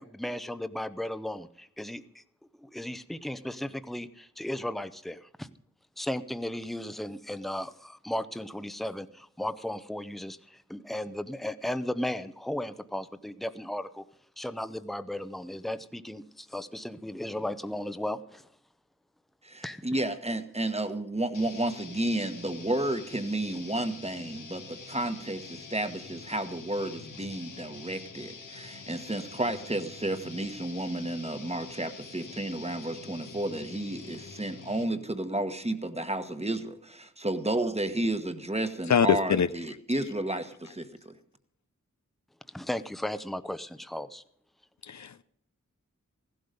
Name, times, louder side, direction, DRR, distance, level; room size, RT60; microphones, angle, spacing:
voice 1, 0.0-2.2 2.6-5.5 6.0-14.0 14.4-18.5 19.6-19.8 42.5-44.2, left 1 dB, ahead, 0.8 m, -35 dB
voice 2, 19.4-41.2, right 1 dB, 20° right, 1.3 m, -32 dB
sound 1, 21.3-35.0, left 4 dB, 85° left, 1.6 m, -46 dB
voice 3, 38.9-39.5 44.9-45.2, left 7 dB, 65° left, 0.6 m, -23 dB
15.5 x 12.0 x 5.2 m
wide cardioid pair, 60°, 31 cm